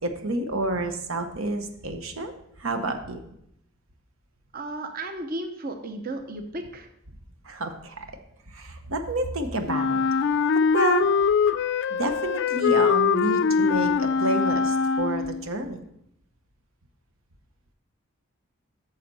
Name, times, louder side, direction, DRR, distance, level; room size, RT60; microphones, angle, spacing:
voice 1, 0.0-2.3 2.6-3.2 7.4-8.1 8.5-10.0 10.7-11.1 11.9-15.8, right 2 dB, 85° right, 7 dB, 0.9 m, -29 dB
voice 2, 4.5-6.9, right 2 dB, 45° right, 6 dB, 0.7 m, -34 dB
Wind instrument woodwind instrument, 9.7-15.5, left 6 dB, 60° left, 0.3 m, -23 dB
9.1 x 6.5 x 4.1 m, 0.75 s
head